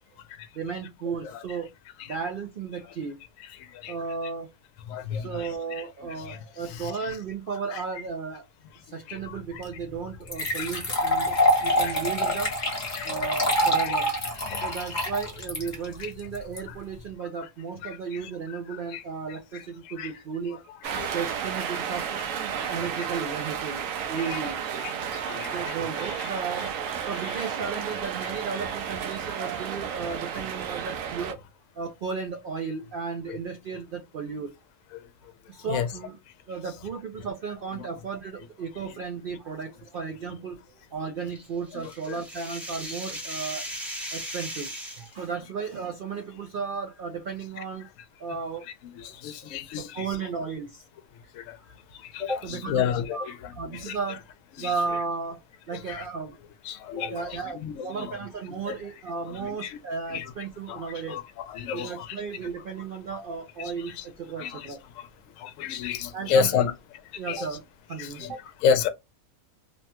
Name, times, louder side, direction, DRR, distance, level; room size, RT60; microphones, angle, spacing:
voice 1, 0.5-1.7 2.0-3.2 3.9-4.5 5.1-8.5 8.8-12.5 13.0-14.1 14.6-20.8 21.0-23.8 24.1-26.7 27.0-31.4 31.8-34.5 35.5-36.2 36.5-40.6 40.9-43.6 44.1-47.9 48.2-48.7 49.0-49.5 49.8-50.8 52.2-52.8 53.1-54.2 54.6-56.4 56.9-61.2 61.7-64.8 66.1-66.7 67.1-67.6 67.9-68.4, right 5 dB, 85° right, 0.4 m, -34 dB
voice 2, 4.9-5.8 6.3-6.4 6.7-6.9 7.7-7.8 9.1-9.6 10.4-10.7 11.2-11.9 12.9-13.1 13.8-13.9 14.5-14.7 16.0-16.1 17.8-18.3 18.9-19.0 19.5-19.6 20.0-20.1 20.9-21.2 23.0-23.1 24.2-24.4 24.8-24.9 25.3-26.3 35.7-35.9 41.7-41.8 42.1-42.2 49.0-50.1 51.4-51.5 52.1-54.0 54.6-54.7 55.9-56.0 56.7-58.1 58.7-58.8 59.3-59.8 60.1-60.3 60.7-61.2 61.5-62.2 63.6-64.0 64.4-64.7 65.4-66.7 67.3-67.5 68.0-68.9, left 7 dB, 70° left, 0.9 m, -31 dB
sound 1, 9.6-9.7 10.3-16.6, equal, 35° left, 1.0 m, -25 dB
sound 2, 20.8-31.3, right 8 dB, 70° right, 0.9 m, -32 dB
sound 3, 41.3-45.1, equal, ahead, 0.6 m, -37 dB
3.0 x 2.2 x 2.8 m
omnidirectional pair, 1.5 m